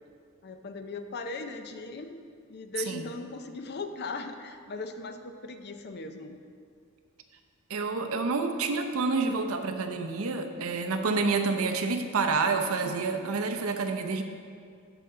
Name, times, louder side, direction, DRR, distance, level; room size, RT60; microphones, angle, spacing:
voice 1, 0.4-2.2 2.5-6.4 12.8-13.2, left 3 dB, 50° left, 7 dB, 0.6 m, -38 dB
voice 2, 7.7-14.2, right 4 dB, 75° right, 6 dB, 0.7 m, -28 dB
12.5 x 5.7 x 3.7 m, 2.2 s
head